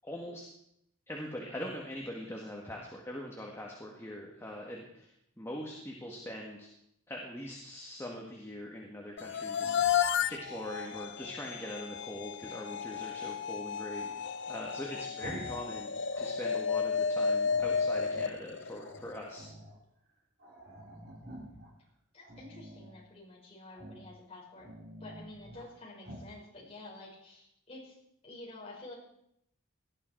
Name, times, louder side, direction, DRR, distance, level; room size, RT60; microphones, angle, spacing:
voice 1, 0.0-0.5 1.1-6.7 7.1-10.0 10.3-19.5, left 1 dB, 10° left, -1 dB, 1.8 m, -42 dB
sound 1, 9.2-19.4, left 6 dB, 55° left, 0.6 m, -33 dB
Growling, 9.5-11.5 13.9-15.7 16.0-16.9 17.4-18.3 18.8-19.8 20.1-20.2 20.4-21.7 22.2-23.0 23.7-24.1 24.5-25.7 26.0-26.3, right 1 dB, 50° right, 3.7 m, -50 dB
voice 2, 22.1-24.7 25.0-28.0 28.2-28.9, left 2 dB, 30° left, -4 dB, 5.6 m, -49 dB
18.0 x 12.5 x 4.6 m, 0.75 s
head